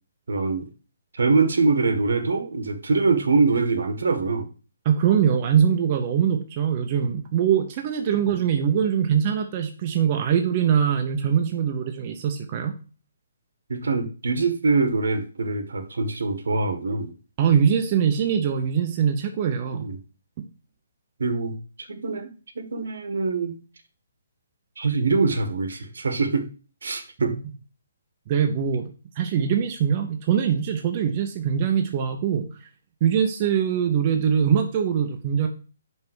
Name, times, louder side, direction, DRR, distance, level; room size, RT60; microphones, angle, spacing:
voice 1, 0.3-0.7 1.1-4.5 13.7-17.1 19.7-20.0 21.2-23.6 24.8-26.5 26.8-27.4, right 4 dB, 75° right, 9 dB, 1.6 m, -24 dB
voice 2, 4.8-12.7 17.4-19.9 28.3-32.5 33.0-35.5, right 8 dB, 20° right, 4 dB, 0.6 m, -22 dB
5.6 x 5.4 x 6.0 m, 0.35 s
hypercardioid pair, 180°, 0 cm